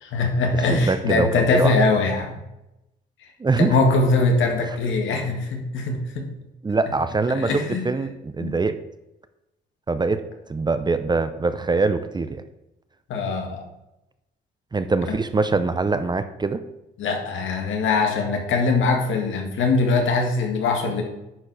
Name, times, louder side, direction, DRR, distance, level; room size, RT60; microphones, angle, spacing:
voice 1, 0.0-2.4 3.6-6.3 7.3-7.9 8.4-8.5 13.1-13.6 17.0-21.0, left 3 dB, 75° left, 2 dB, 1.8 m, -22 dB
voice 2, 0.7-1.8 3.4-3.8 4.7-4.8 6.6-8.8 9.9-10.2 10.5-12.4 14.7-16.6, right 3 dB, 20° right, 11 dB, 0.6 m, -23 dB
10.0 x 4.5 x 4.8 m, 0.92 s
cardioid pair, 90°, 20 cm